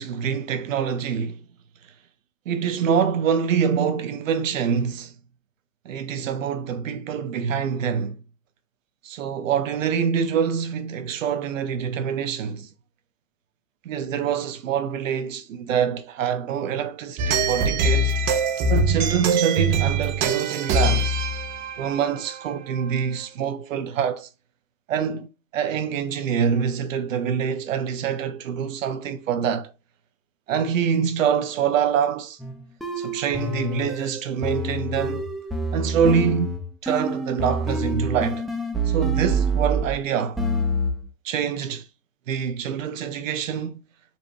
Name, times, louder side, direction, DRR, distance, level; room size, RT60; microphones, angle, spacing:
voice 1, 0.0-1.4 2.5-5.1 5.8-8.2 9.0-12.7 13.8-18.2 18.7-21.2 21.8-24.3 24.9-29.7 30.5-32.4 33.0-35.3 35.7-36.5 36.8-38.5 38.9-40.4 41.2-41.8 42.3-43.8, right 7 dB, 80° right, 0.9 m, -25 dB
sound 1, 17.2-23.0, right 2 dB, 45° right, 0.9 m, -23 dB
sound 2, 32.4-40.0 40.4-41.1, right 1 dB, ahead, 1.0 m, -27 dB
5.6 x 3.1 x 2.7 m
hypercardioid pair, 95°, 39 cm